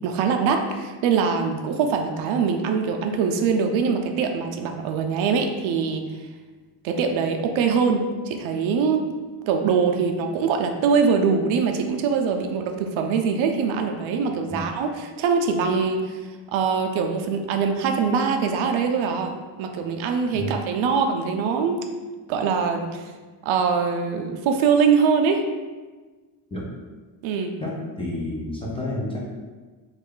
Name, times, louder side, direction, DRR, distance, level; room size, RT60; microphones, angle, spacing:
voice 1, 0.0-6.1 6.8-9.1 9.5-16.2 16.5-19.3 19.6-21.8 22.3-23.0 23.4-25.4 27.2-27.6, right 5 dB, 80° right, 5 dB, 0.5 m, -23 dB
voice 2, 28.0-29.2, left 1 dB, 10° left, -5 dB, 0.5 m, -29 dB
3.2 x 2.4 x 3.6 m, 1.3 s
cardioid pair, 145°, 47 cm